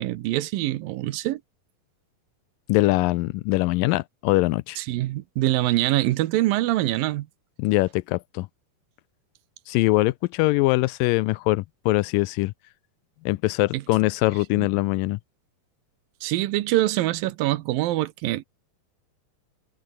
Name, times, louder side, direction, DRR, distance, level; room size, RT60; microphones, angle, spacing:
voice 1, 0.0-1.4 4.8-7.3 13.7-13.8 14.6-14.7 16.2-18.5, right 16 dB, 80° right, 2.6 m, -24 dB
voice 2, 2.7-4.8 7.6-8.5 9.7-12.5 13.3-15.2, left 21 dB, 80° left, 2.1 m, -22 dB
omnidirectional pair, 4.1 m